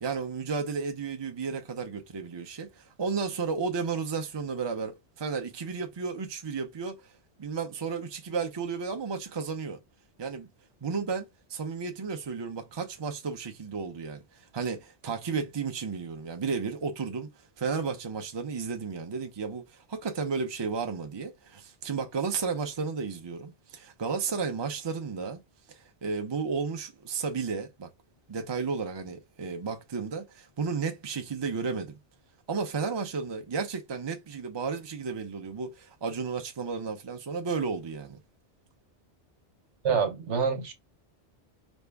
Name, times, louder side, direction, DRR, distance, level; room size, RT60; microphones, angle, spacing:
voice 1, 0.0-7.1 7.4-9.8 10.2-10.5 10.8-17.3 17.6-25.4 25.7-27.9 28.3-32.0 32.5-38.2, right 5 dB, 30° right, 0.6 m, -33 dB
voice 2, 39.8-40.7, right 6 dB, 75° right, 1.2 m, -26 dB
5.2 x 2.3 x 3.4 m
omnidirectional pair, 1.2 m